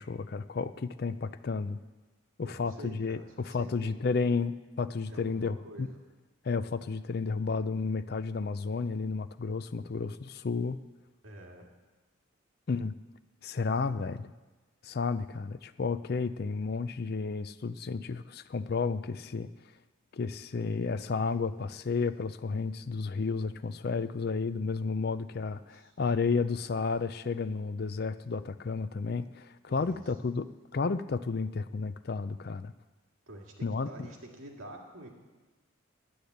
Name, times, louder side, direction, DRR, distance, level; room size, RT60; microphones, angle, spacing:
voice 1, 0.0-1.8 2.4-5.9 6.4-10.8 12.7-13.0 13.4-14.3 14.8-19.5 20.1-30.5 30.7-32.7 33.6-34.1, left 4 dB, 50° left, 12 dB, 0.4 m, -32 dB
voice 2, 2.4-3.9 5.1-6.0 11.2-11.7 25.3-25.9 29.7-30.0 33.3-35.1, right 1 dB, 85° right, 0 dB, 2.0 m, -48 dB
10.0 x 8.7 x 7.9 m, 1.2 s
head